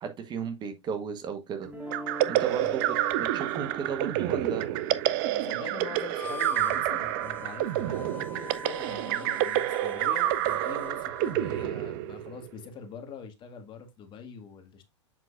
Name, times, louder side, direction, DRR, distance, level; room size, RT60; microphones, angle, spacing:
voice 1, 0.0-1.7 2.3-4.6, right 6 dB, 30° right, 1.1 m, -34 dB
sound 1, 1.6-7.7, equal, 10° right, 2.1 m, -46 dB
sound 2, 1.9-12.5, right 13 dB, 45° right, 0.6 m, -28 dB
voice 2, 5.4-14.9, left 6 dB, 30° left, 1.6 m, -44 dB
Harmonica, 6.1-11.8, left 3 dB, 10° left, 0.5 m, -43 dB
7.6 x 5.8 x 2.4 m
figure-of-eight pair, 95°, 15 cm